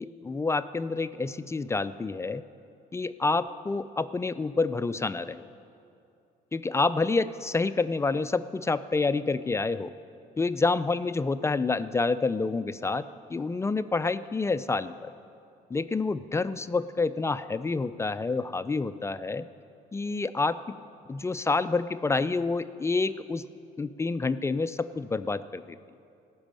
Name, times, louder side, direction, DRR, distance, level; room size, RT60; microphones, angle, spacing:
voice 1, 0.0-2.4 2.9-5.5 6.5-9.9 10.4-15.1 15.7-19.5 19.9-20.8 21.1-23.4 23.8-25.8, left 3 dB, 15° left, 13 dB, 0.3 m, -28 dB
16.0 x 6.2 x 8.9 m, 2.6 s
cardioid pair, 110°, 17 cm